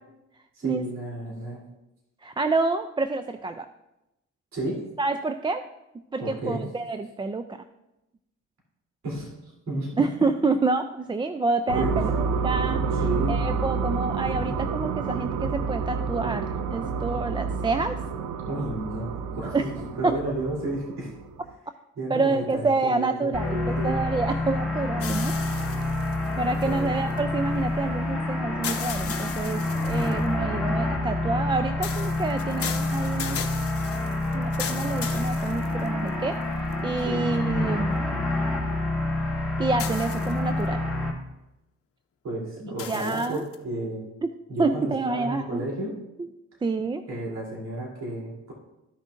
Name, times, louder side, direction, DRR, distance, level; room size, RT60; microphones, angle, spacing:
voice 1, 0.5-1.6 4.5-4.8 6.2-6.6 9.0-10.0 11.7-12.0 13.0-13.6 18.4-19.1 19.3-21.1 22.0-24.0 26.6-26.9 37.0-37.3 42.2-44.1 44.5-45.9 47.1-48.5, right 1 dB, 65° right, -4 dB, 3.2 m, -32 dB
voice 2, 2.2-3.7 5.0-5.6 6.1-7.6 10.0-13.0 13.3-18.0 19.5-19.7 20.0-20.2 22.1-25.8 26.4-33.4 34.3-38.2 39.6-40.8 42.9-43.4 44.2-44.3 44.6-45.7 46.2-46.3 46.6-47.0, right 3 dB, 15° right, 9 dB, 0.3 m, -28 dB
sound 1, 11.7-21.5, right 5 dB, 85° right, 0.7 m, -29 dB
sound 2, 23.3-41.1, left 2 dB, ahead, 2.1 m, -27 dB
sound 3, 25.0-27.2 28.6-30.3 31.8-36.1 36.7-36.8 39.8-40.6 42.8-43.6, left 8 dB, 50° left, 0.9 m, -36 dB
14.0 x 6.2 x 2.5 m, 0.93 s
cardioid pair, 90°, 30 cm